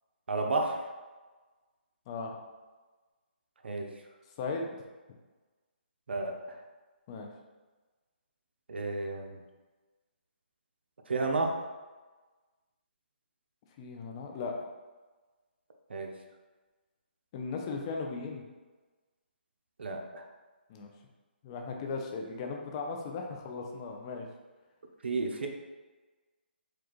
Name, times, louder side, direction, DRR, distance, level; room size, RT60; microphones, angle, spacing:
voice 1, 0.3-0.8 3.6-3.9 6.1-6.6 8.7-9.4 11.1-11.6 15.9-16.1 19.8-20.3 25.0-25.5, right 3 dB, 75° right, 3 dB, 0.6 m, -32 dB
voice 2, 4.4-4.9 7.1-7.3 13.8-14.7 17.3-18.4 20.7-20.9 21.4-24.3, left 4 dB, 25° left, 2 dB, 0.5 m, -37 dB
4.8 x 2.4 x 3.0 m, 1.3 s
hypercardioid pair, 155°, 6 cm